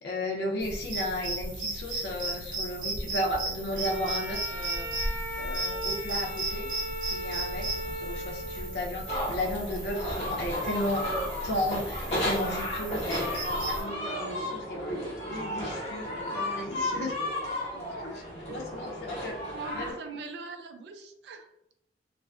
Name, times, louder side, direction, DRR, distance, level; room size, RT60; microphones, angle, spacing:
voice 1, 0.0-4.9 5.4-6.7 7.1-11.0 11.4-17.1 18.0-19.4 19.7-19.9, left 1 dB, 60° left, 0 dB, 0.5 m, -34 dB
sound 1, 0.6-13.8, right 1 dB, 50° right, 0.8 m, -35 dB
Bowed string instrument, 3.7-9.0, equal, 5° right, 1.0 m, -38 dB
sound 2, 9.1-19.9, left 1 dB, 35° left, 0.9 m, -33 dB
voice 2, 19.5-21.5, right 4 dB, 65° right, 6 dB, 0.3 m, -41 dB
2.4 x 2.4 x 2.3 m, 0.80 s
head